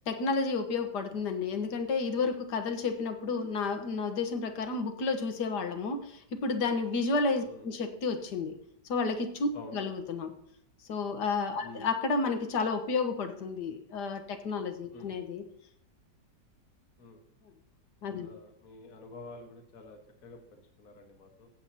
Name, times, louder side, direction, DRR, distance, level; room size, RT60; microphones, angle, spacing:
voice 1, 0.1-8.6 8.9-10.3 10.9-15.4 18.0-18.3, left 4 dB, 70° left, 7 dB, 1.8 m, -31 dB
voice 2, 18.2-21.5, left 3 dB, 55° left, 3 dB, 1.7 m, -49 dB
16.0 x 8.3 x 2.9 m, 0.71 s
omnidirectional pair, 1.9 m